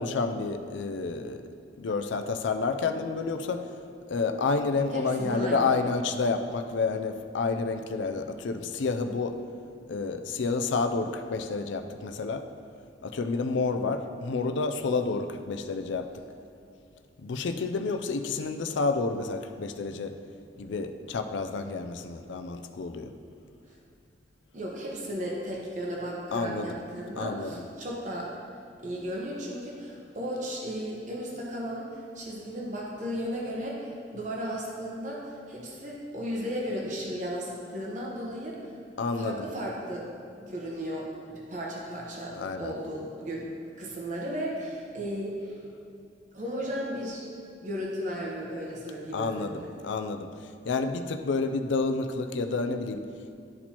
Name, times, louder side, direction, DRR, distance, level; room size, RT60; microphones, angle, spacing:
voice 1, 0.0-1.4 1.8-3.7 4.1-9.4 9.9-12.4 13.0-16.1 17.2-20.1 20.6-23.1 26.3-26.7 27.2-27.5 39.0-39.5 42.4-42.7 49.1-53.0, left 4 dB, 75° left, 7 dB, 0.4 m, -29 dB
voice 2, 4.9-5.7 24.5-28.3 28.8-38.7 39.2-40.1 40.4-43.4 43.8-45.6 46.3-47.3 47.6-49.7, equal, 40° right, -3 dB, 0.9 m, -35 dB
12.0 x 4.3 x 2.9 m, 2.5 s
head